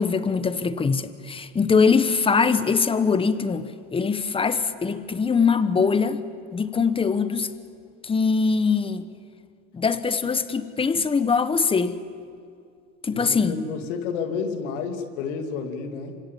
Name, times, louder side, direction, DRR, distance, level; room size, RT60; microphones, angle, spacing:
voice 1, 0.0-3.7 3.9-6.2 6.5-7.5 8.0-9.1 9.7-12.0 13.0-13.5, left 5 dB, 15° left, 13 dB, 1.2 m, -22 dB
voice 2, 13.1-16.2, left 5 dB, 80° left, 6 dB, 3.1 m, -30 dB
27.5 x 25.5 x 7.7 m, 2.3 s
supercardioid pair, 120°, 36 cm